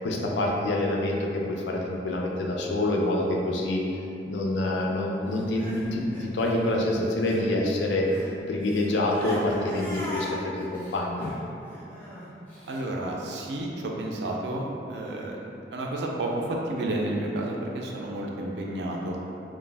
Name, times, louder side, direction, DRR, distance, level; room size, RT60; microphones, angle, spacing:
voice 1, 0.0-3.8 4.3-8.1 8.5-11.3, left 1 dB, 90° left, -1 dB, 0.4 m, -26 dB
Crying sobbing, 5.3-7.5 7.8-12.8, equal, 10° left, 0.5 m, -41 dB
voice 2, 12.6-19.2, right 1 dB, 80° right, -1 dB, 0.4 m, -31 dB
2.4 x 2.0 x 3.2 m, 2.8 s
head